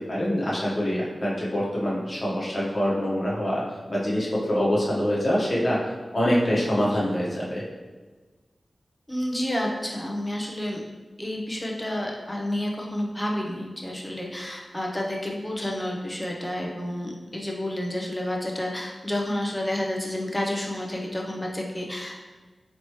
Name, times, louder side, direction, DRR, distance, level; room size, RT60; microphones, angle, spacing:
voice 1, 0.1-3.6 3.9-5.8 6.1-7.6, equal, 40° left, -6 dB, 1.2 m, -25 dB
voice 2, 9.1-10.8 11.2-22.2, left 1 dB, 15° left, -1 dB, 0.7 m, -30 dB
4.2 x 3.0 x 3.1 m, 1.3 s
wide cardioid pair, 75°, 0 cm